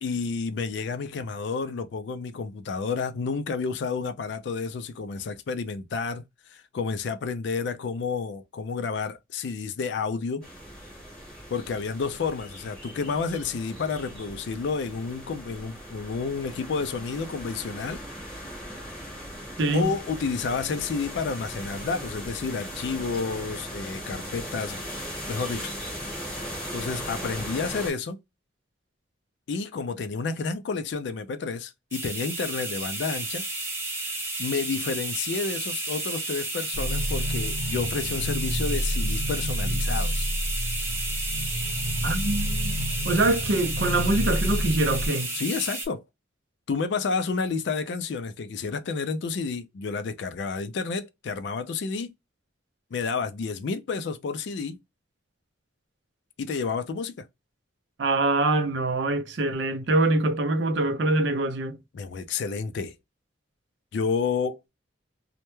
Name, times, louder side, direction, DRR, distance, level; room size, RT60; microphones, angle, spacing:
voice 1, 0.0-10.5 11.5-18.0 19.7-24.8 25.3-25.7 26.7-28.2 29.5-33.4 34.4-40.3 45.3-46.0 46.7-52.1 52.9-54.8 56.4-57.3 61.9-63.0 63.9-64.6, left 5 dB, 60° left, 0.3 m, -30 dB
sound 1, 10.4-27.9, equal, 5° left, 0.9 m, -38 dB
voice 2, 19.6-19.9 42.0-42.8 43.0-45.3 58.0-61.8, right 2 dB, 65° right, 0.5 m, -24 dB
sound 2, 31.9-45.9, right 2 dB, 15° right, 0.5 m, -32 dB
sound 3, 36.7-45.1, equal, 40° left, 0.7 m, -29 dB
2.1 x 2.1 x 2.9 m
head